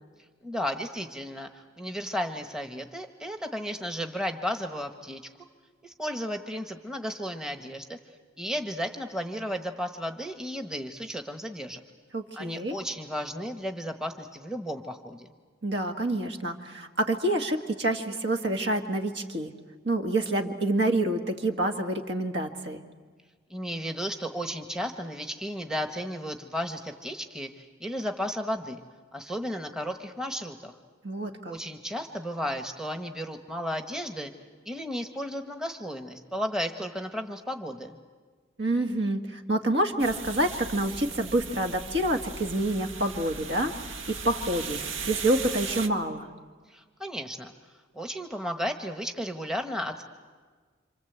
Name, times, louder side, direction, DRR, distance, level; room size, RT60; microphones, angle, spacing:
voice 1, 0.4-5.2 5.8-8.0 8.4-11.8 12.3-15.3 23.5-28.8 29.1-30.7 31.5-34.3 34.6-38.0 46.7-47.5 47.9-50.0, equal, 5° right, 5 dB, 1.2 m, -34 dB
voice 2, 12.1-12.8 15.6-19.5 19.8-22.8 31.0-31.6 38.6-46.3, right 1 dB, 60° right, 5 dB, 2.0 m, -27 dB
sound 1, 40.0-45.9, right 5 dB, 85° right, 1.6 m, -37 dB
28.0 x 26.5 x 8.1 m, 1.5 s
head